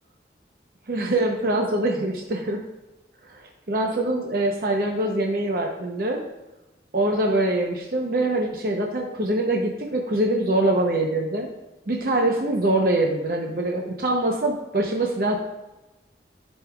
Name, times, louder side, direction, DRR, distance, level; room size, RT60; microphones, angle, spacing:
voice 1, 0.9-2.6 3.3-3.4 3.7-6.2 6.9-11.5 11.9-15.4, right 1 dB, 55° right, 1 dB, 0.8 m, -24 dB
13.5 x 5.4 x 2.4 m, 1.0 s
head